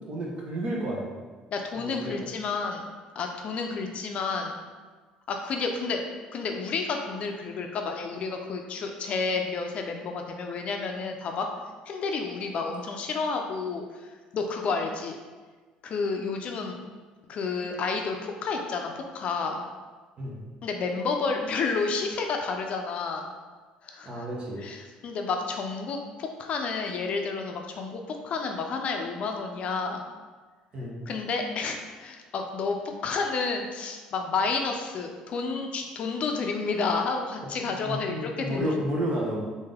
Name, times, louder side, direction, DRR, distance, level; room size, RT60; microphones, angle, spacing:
voice 1, 0.1-1.2 1.7-2.2 20.2-20.4 24.0-24.6 30.7-31.0 37.8-39.4, equal, 45° right, -2 dB, 1.0 m, -31 dB
voice 2, 1.5-2.8 3.2-4.6 5.3-6.0 6.3-11.5 11.9-14.1 14.3-15.2 15.8-16.8 17.3-19.7 20.6-23.3 23.8-24.2 24.6-30.0 31.1-32.8 33.0-38.8, left 4 dB, 50° left, 3 dB, 0.5 m, -30 dB
3.4 x 2.7 x 3.3 m, 1.4 s
supercardioid pair, 85°, 3 cm